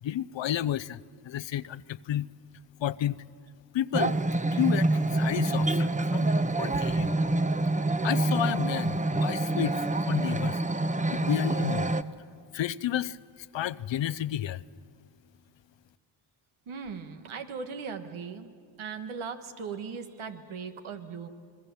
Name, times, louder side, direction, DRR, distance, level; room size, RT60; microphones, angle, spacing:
voice 1, 0.0-2.3 2.8-3.2 3.7-4.2 4.5-6.3 6.6-7.1 8.0-10.6 11.1-12.0 12.5-14.6, left 11 dB, 70° left, 0.7 m, -31 dB
sound 1, 3.9-12.0, right 2 dB, 15° right, 0.9 m, -26 dB
voice 2, 16.7-18.5 18.8-21.3, right 5 dB, 85° right, 1.5 m, -38 dB
26.5 x 21.5 x 7.0 m
supercardioid pair, 45°, 47 cm